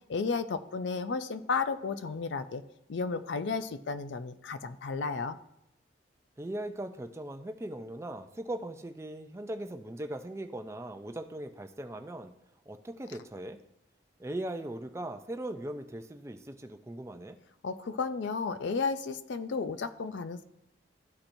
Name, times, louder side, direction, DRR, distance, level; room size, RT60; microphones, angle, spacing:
voice 1, 0.1-2.6 2.9-5.4 17.6-20.4, left 4 dB, 75° left, 11 dB, 0.4 m, -33 dB
voice 2, 6.4-12.3 12.7-13.6 14.2-17.4, right 1 dB, 15° right, 7 dB, 0.4 m, -39 dB
13.0 x 4.3 x 2.6 m, 0.84 s
head